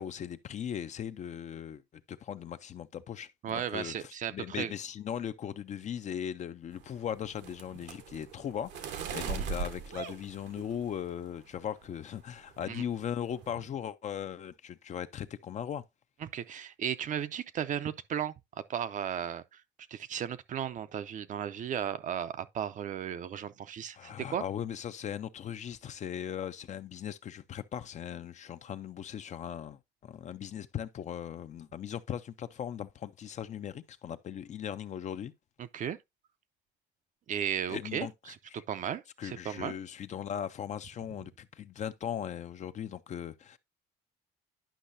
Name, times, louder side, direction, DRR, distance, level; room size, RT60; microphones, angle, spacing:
voice 1, 0.0-1.8 2.1-15.8 23.9-35.3 37.7-38.1 38.5-38.6 39.2-43.6, left 9 dB, 45° left, 0.5 m, -38 dB
voice 2, 3.4-4.7 9.2-9.5 12.7-12.8 16.2-19.6 19.9-24.4 35.6-36.0 37.3-39.7, right 9 dB, 45° right, 0.5 m, -35 dB
sound 1, 6.7-11.1 11.6-12.0 12.3-12.6 12.9-13.5, right 6 dB, 85° right, 1.2 m, -40 dB
10.0 x 5.5 x 2.6 m
cardioid pair, 115°, 17 cm